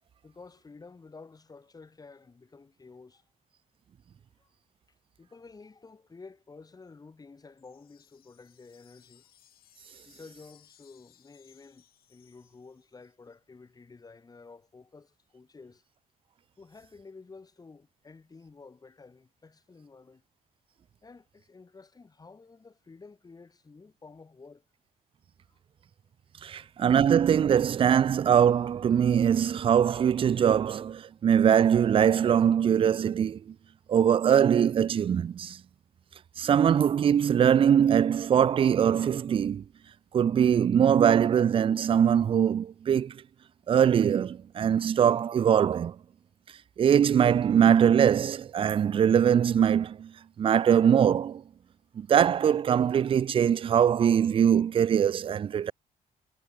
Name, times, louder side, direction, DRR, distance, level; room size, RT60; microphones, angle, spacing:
voice 1, 0.2-3.2 4.4-4.5 5.2-9.3 10.0-15.8 16.6-20.2 21.0-24.6 25.5-25.6 26.4-26.8, left 4 dB, 25° left, 5.0 m, -51 dB
sound 1, 7.6-13.1, left 11 dB, 70° left, 7.4 m, -62 dB
voice 2, 26.4-33.5 33.9-35.6 36.4-39.6 40.1-43.2 43.7-46.0 46.8-50.1 50.4-51.4 52.0-55.7, right 8 dB, 35° right, 0.4 m, -22 dB
cardioid pair, 130°, 16 cm